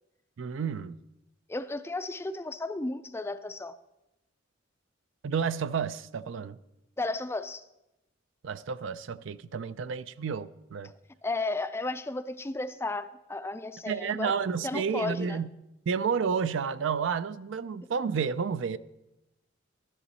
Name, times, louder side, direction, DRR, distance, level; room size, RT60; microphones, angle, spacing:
voice 1, 0.4-1.0 5.2-6.6 8.4-10.9 13.9-15.5 15.9-18.8, right 6 dB, 65° right, 0.4 m, -31 dB
voice 2, 1.5-3.7 7.0-7.6 11.2-14.3 14.6-15.4, left 2 dB, 10° left, 0.4 m, -33 dB
12.5 x 10.0 x 4.1 m
head